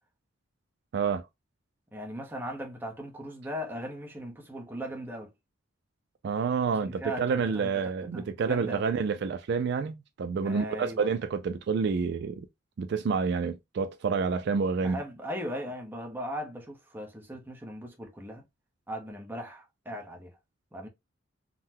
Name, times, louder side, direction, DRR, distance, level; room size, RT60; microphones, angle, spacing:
voice 1, 0.9-1.3 6.2-12.5 12.8-15.0, right 5 dB, 55° right, 0.3 m, -28 dB
voice 2, 1.9-5.3 6.7-7.8 8.1-8.8 10.4-11.1 14.8-18.4 18.9-20.3 20.7-20.9, equal, 10° right, 0.7 m, -38 dB
3.7 x 2.1 x 2.8 m
head